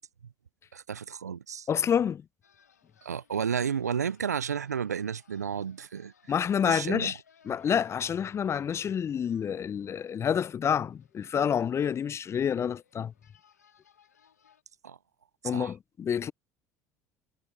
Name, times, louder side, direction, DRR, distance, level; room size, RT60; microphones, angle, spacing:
voice 1, 0.7-1.7 3.0-6.1 6.7-7.1 14.8-15.0 15.5-15.7, right 7 dB, 90° right, 0.4 m, -32 dB
voice 2, 1.7-2.2 6.3-7.2 7.4-13.1 15.4-16.3, left 8 dB, 30° left, 0.5 m, -28 dB
sound 1, 2.4-14.6, left 8 dB, 85° left, 1.9 m, -65 dB
figure-of-eight pair, 65°, 9 cm